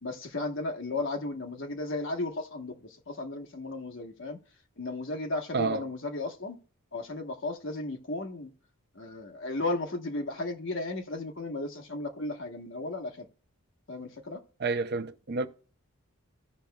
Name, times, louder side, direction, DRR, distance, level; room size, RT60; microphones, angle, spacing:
voice 1, 0.0-4.4 4.8-6.6 6.9-8.5 8.9-13.3 13.9-14.4, left 2 dB, 60° left, 1.2 m, -35 dB
voice 2, 14.6-15.5, right 4 dB, 50° right, 0.6 m, -29 dB
16.0 x 5.7 x 2.3 m
head